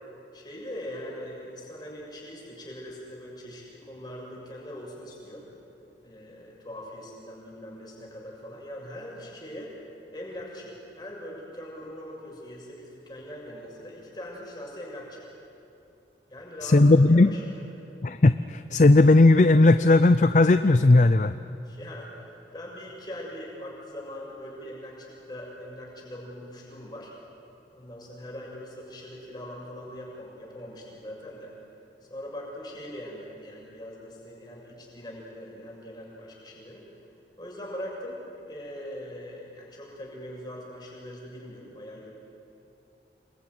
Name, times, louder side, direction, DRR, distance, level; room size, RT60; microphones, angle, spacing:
voice 1, 0.3-5.5 6.0-9.7 10.1-15.3 16.3-16.8 17.1-17.6 21.6-27.1 27.7-31.6 32.1-36.8 37.4-42.1, equal, 25° left, -3 dB, 6.9 m, -41 dB
voice 2, 16.6-17.3 18.0-21.3, left 2 dB, 40° left, 11 dB, 0.5 m, -17 dB
27.5 x 21.5 x 9.6 m, 2.8 s
head